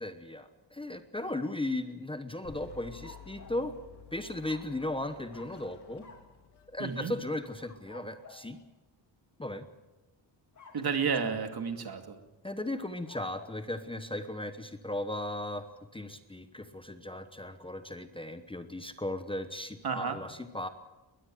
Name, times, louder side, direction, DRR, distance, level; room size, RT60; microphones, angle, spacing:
voice 1, 0.0-3.7 4.1-6.0 6.7-8.6 9.4-9.7 11.3-11.4 12.4-15.7 15.9-20.7, left 1 dB, 10° left, 9 dB, 1.0 m, -36 dB
sound 1, 2.4-7.9, left 7 dB, 60° left, 3.5 m, -53 dB
sound 2, 2.9-3.7 4.4-5.0 5.3-5.6 6.0-6.3 7.3-8.5 10.5-11.4 12.9-13.6, left 4 dB, 40° left, 3.3 m, -53 dB
voice 2, 6.8-7.1 10.7-12.2 19.8-20.2, right 6 dB, 55° right, 7 dB, 2.5 m, -31 dB
21.5 x 20.5 x 7.8 m, 1.1 s
wide cardioid pair, 170°, 45 cm